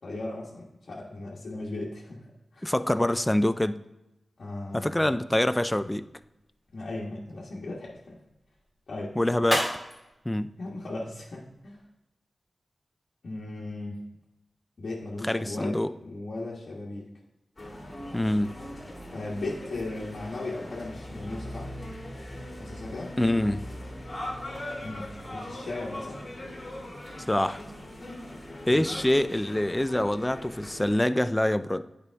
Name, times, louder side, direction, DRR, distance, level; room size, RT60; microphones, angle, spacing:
voice 1, 0.0-2.7 4.4-5.1 5.8-5.9 6.7-8.2 8.9-9.2 10.6-11.8 13.2-14.0 14.8-17.1 19.1-21.7 22.6-23.1 24.8-26.2 28.7-28.8, left 2 dB, 70° left, -5 dB, 1.3 m, -37 dB
voice 2, 2.6-3.8 4.7-6.0 9.2-9.7 10.3-10.5 15.3-15.9 18.1-18.6 23.2-23.7 27.3-27.6 28.7-31.9, left 1 dB, 10° left, 13 dB, 0.3 m, -25 dB
sound 1, 6.0-11.8, equal, 10° right, 2.3 m, -37 dB
sound 2, 17.6-31.0, left 1 dB, 35° left, 2.2 m, -40 dB
9.5 x 5.1 x 3.4 m, 0.95 s
wide cardioid pair, 95°, 0 cm